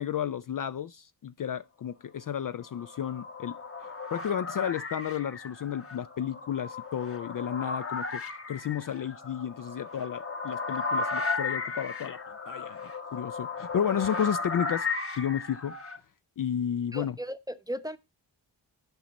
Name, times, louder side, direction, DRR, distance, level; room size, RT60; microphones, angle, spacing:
voice 1, 0.0-3.5 3.8-12.2 12.5-14.9 15.1-15.7 16.4-17.2, left 9 dB, 50° left, 0.4 m, -32 dB
sound 1, 2.6-16.0, left 3 dB, 30° left, 1.2 m, -35 dB
voice 2, 16.9-18.0, equal, 10° right, 0.8 m, -36 dB
10.5 x 5.2 x 4.1 m
cardioid pair, 45°, 45 cm